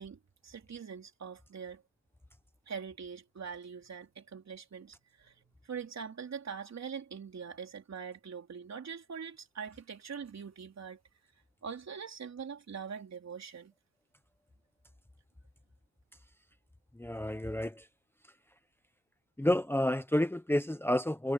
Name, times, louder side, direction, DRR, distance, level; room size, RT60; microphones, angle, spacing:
voice 1, 0.0-1.8 2.7-11.0 11.6-13.7, right 6 dB, 60° right, 3.7 m, -43 dB
voice 2, 16.9-17.9 19.4-21.3, left 1 dB, 10° left, 0.8 m, -30 dB
wide cardioid pair, 150°, 30 cm